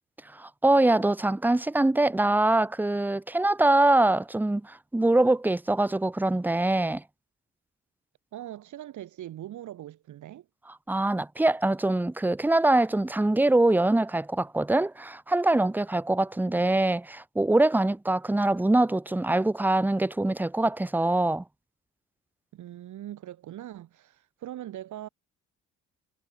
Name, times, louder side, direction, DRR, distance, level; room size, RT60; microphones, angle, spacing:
voice 1, 0.3-7.0 10.9-21.4, right 2 dB, 5° right, 0.6 m, -23 dB
voice 2, 8.3-10.5 22.5-25.1, right 12 dB, 75° right, 3.9 m, -41 dB
cardioid pair, 90°, 30 cm